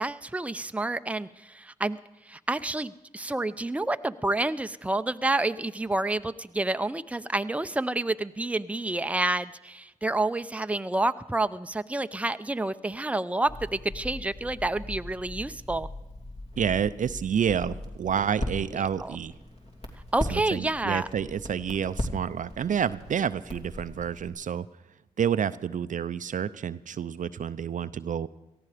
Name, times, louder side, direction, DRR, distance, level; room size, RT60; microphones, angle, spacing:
voice 1, 0.0-2.0 2.2-15.9 18.7-18.8 20.1-21.1, right 2 dB, 10° right, 11 dB, 0.6 m, -29 dB
Crackle, 13.4-24.3, left 1 dB, 40° left, 2.9 m, -39 dB
voice 2, 16.6-19.3 20.3-24.7 25.2-28.3, right 8 dB, 60° right, 14 dB, 0.5 m, -29 dB
18.0 x 14.0 x 5.1 m, 1.0 s
supercardioid pair, 45°, 15 cm